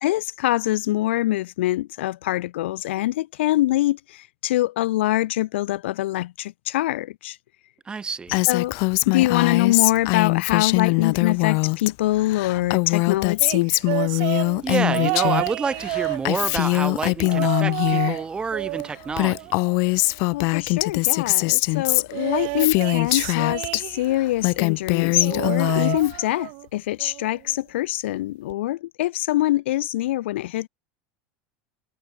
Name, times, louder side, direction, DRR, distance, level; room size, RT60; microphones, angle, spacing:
voice 1, 0.0-7.4 8.5-8.8 9.1-13.7 20.3-30.7, left 16 dB, 90° left, 1.8 m, -24 dB
voice 2, 7.9-8.4 14.2-19.5, right 5 dB, 15° right, 2.3 m, -29 dB
Female speech woman speaking, 8.3-11.9 12.2-15.5 15.8-18.2 18.8-18.9 19.1-23.8 24.2-26.2, left 32 dB, 55° left, 0.4 m, -22 dB
sound 1, 13.4-16.7 17.2-18.2 18.5-20.1 22.1-24.3 25.2-26.7 27.0-27.4 28.5-28.6, right 40 dB or more, 60° right, 1.1 m, -30 dB
supercardioid pair, 145°, 6 cm